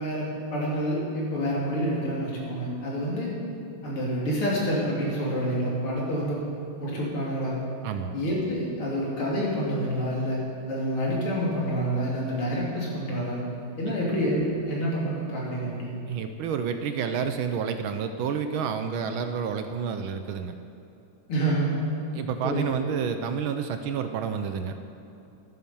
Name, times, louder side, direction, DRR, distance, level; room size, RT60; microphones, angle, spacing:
voice 1, 0.0-3.3 3.8-6.4 6.8-7.6 8.1-10.4 10.7-13.4 13.8-15.9 21.3-21.8 22.4-22.6, equal, 85° left, -5 dB, 3.9 m, -28 dB
voice 2, 7.8-8.2 13.9-14.0 16.1-20.6 22.1-24.7, right 7 dB, 75° right, 8 dB, 1.5 m, -29 dB
13.0 x 9.3 x 7.0 m, 2.8 s
omnidirectional pair, 2.3 m